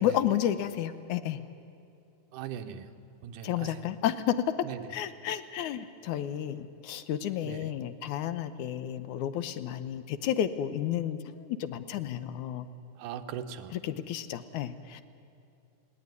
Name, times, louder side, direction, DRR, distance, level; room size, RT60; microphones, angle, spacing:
voice 1, 0.0-1.4 3.4-4.4 4.9-12.7 13.7-15.0, left 11 dB, 80° left, 12 dB, 2.2 m, -31 dB
voice 2, 2.3-2.9 3.2-3.9 4.6-4.9 7.4-7.7 13.0-13.8, right 9 dB, 85° right, 7 dB, 2.5 m, -40 dB
20.0 x 18.0 x 9.5 m, 2.6 s
omnidirectional pair, 3.6 m